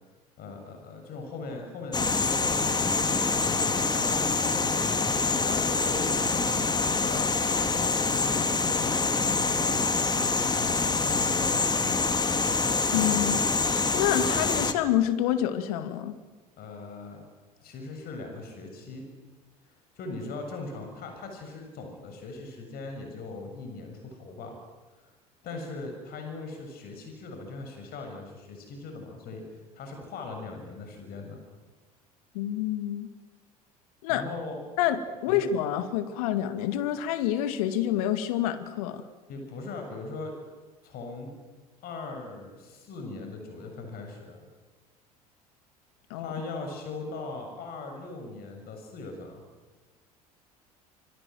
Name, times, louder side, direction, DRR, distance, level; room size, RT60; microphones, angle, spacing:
voice 1, 0.4-12.3 16.6-17.2 17.6-19.1 19.7-24.6 25.4-31.4 34.1-34.6 35.3-35.4 39.3-40.3 40.8-41.3 41.8-44.5 46.2-49.4, left 3 dB, 50° left, 4 dB, 7.0 m, -40 dB
sound 1, 1.9-14.7, left 4 dB, 20° left, 2.7 m, -26 dB
voice 2, 12.9-13.4 13.9-16.2 32.3-33.1 34.0-34.3 34.8-39.1 46.1-46.3, left 11 dB, 70° left, 10 dB, 2.2 m, -27 dB
26.5 x 23.0 x 9.4 m, 1.3 s
figure-of-eight pair, 65°, 20 cm